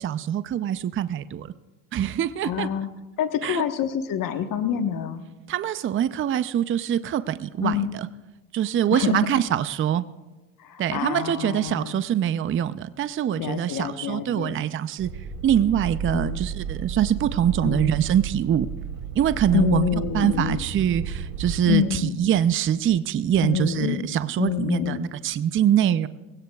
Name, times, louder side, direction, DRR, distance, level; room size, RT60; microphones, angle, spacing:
voice 1, 0.0-1.5 1.9-2.7 3.4-3.7 5.5-8.1 8.5-10.0 10.8-15.1 15.4-18.7 19.1-19.9 20.1-26.1, right 10 dB, 30° right, 14 dB, 0.6 m, -24 dB
voice 2, 2.4-2.9 3.2-5.2 7.6-7.9 8.9-9.4 10.6-12.0 13.4-14.7 16.1-16.4 17.6-17.9 19.5-20.6 21.7-22.2 23.4-24.1 24.4-25.1, left 9 dB, 50° left, 7 dB, 1.3 m, -27 dB
sound 1, 15.0-21.6, right 7 dB, 50° right, 2.2 m, -33 dB
22.5 x 17.0 x 2.4 m, 1.1 s
supercardioid pair, 85°, 42 cm